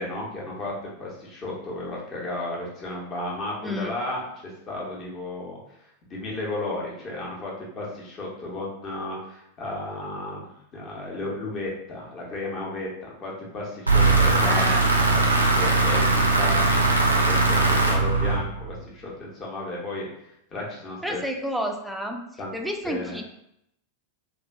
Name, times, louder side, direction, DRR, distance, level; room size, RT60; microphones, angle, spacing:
voice 1, 0.0-10.5 10.7-14.8 15.1-20.1 20.5-21.2 22.4-22.5 22.8-23.2, left 2 dB, 30° left, -3 dB, 0.8 m, -34 dB
sound 1, 13.9-18.8, right 3 dB, 80° right, 0.4 m, -20 dB
voice 2, 14.4-14.8 21.0-22.2 22.5-23.2, equal, ahead, 2 dB, 0.3 m, -30 dB
2.6 x 2.5 x 2.2 m, 0.78 s
figure-of-eight pair, 90°, 0 cm